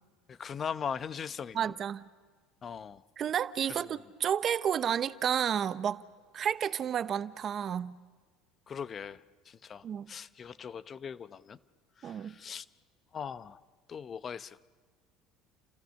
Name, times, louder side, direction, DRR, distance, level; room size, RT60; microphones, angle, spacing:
voice 1, 0.3-1.7 2.6-3.0 3.7-3.8 8.7-11.6 12.0-12.7 13.1-13.6 13.9-14.6, left 7 dB, 35° left, 0.8 m, -40 dB
voice 2, 1.5-2.1 3.2-6.0 6.3-8.0 9.8-10.1 12.0-12.4, right 9 dB, 40° right, 0.8 m, -31 dB
30.0 x 27.5 x 6.5 m
supercardioid pair, 105°, 0 cm